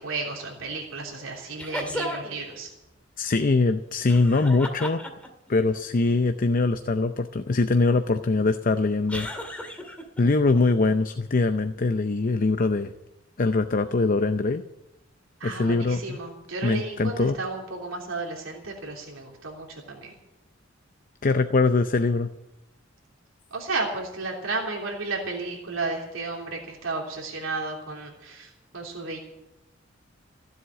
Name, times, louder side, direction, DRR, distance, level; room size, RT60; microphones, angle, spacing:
voice 1, 0.0-2.7 15.4-20.2 23.5-29.2, right 3 dB, 85° right, -1 dB, 3.2 m, -33 dB
sound 1, 1.6-2.4 4.1-5.5 9.1-10.2, left 1 dB, 5° left, 2.1 m, -34 dB
voice 2, 3.2-5.0 5.5-9.3 10.2-12.9 13.4-14.6 15.4-16.2 16.6-17.4 21.2-22.3, left 3 dB, 45° left, 9 dB, 0.6 m, -22 dB
15.5 x 8.0 x 9.8 m, 0.93 s
head